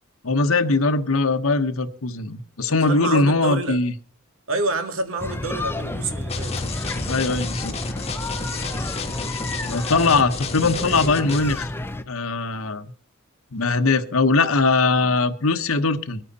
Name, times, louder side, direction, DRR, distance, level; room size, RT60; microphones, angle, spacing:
voice 1, 0.2-3.9 7.0-7.8 9.7-11.7 12.1-12.9 13.5-16.2, left 3 dB, 90° left, 1.1 m, -21 dB
voice 2, 2.9-3.8 4.5-6.6, right 2 dB, 75° right, 2.1 m, -27 dB
sound 1, 5.2-12.0, left 1 dB, 10° left, 0.7 m, -30 dB
sound 2, 6.3-11.6, left 4 dB, 30° left, 1.6 m, -32 dB
22.5 x 9.1 x 4.2 m
head